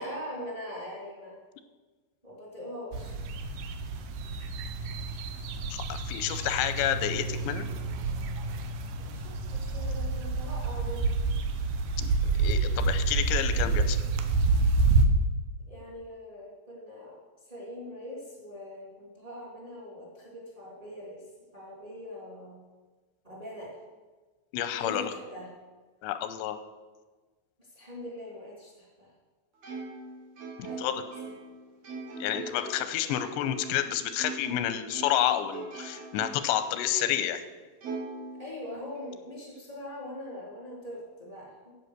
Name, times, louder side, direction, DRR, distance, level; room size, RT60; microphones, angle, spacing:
voice 1, 0.0-1.4 2.2-3.2 9.1-11.1 15.7-21.2 21.5-22.6 23.2-23.8 24.8-25.5 27.6-29.1 30.6-31.0 31.2-31.3 38.4-41.8, equal, 10° right, -4 dB, 2.3 m, -42 dB
sound 1, 2.9-15.1, right 3 dB, 80° right, 2.0 m, -28 dB
voice 2, 5.7-7.7 12.0-12.1 12.4-14.0 24.5-25.1 26.0-26.6 30.6-31.0 32.2-37.4, left 11 dB, 90° left, 10 dB, 2.9 m, -29 dB
Plucked string instrument, 29.6-34.6 34.9-36.6 37.0-37.1 37.8-39.0, right 3 dB, 45° right, 2.8 m, -41 dB
9.6 x 8.2 x 6.5 m, 1.3 s
omnidirectional pair, 5.0 m